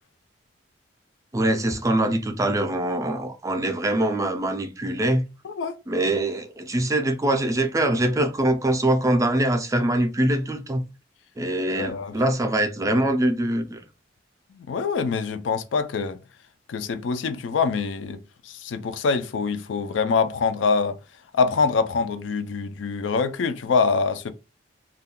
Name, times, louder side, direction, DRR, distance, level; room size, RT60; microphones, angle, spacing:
voice 1, 1.3-5.2 5.9-10.8 11.4-13.8, right 1 dB, 15° right, 0.4 m, -23 dB
voice 2, 5.4-5.8 11.8-12.2 14.5-16.2 16.7-18.2 18.5-21.0 21.3-24.3, left 5 dB, 85° left, 0.4 m, -24 dB
2.3 x 2.2 x 3.5 m
head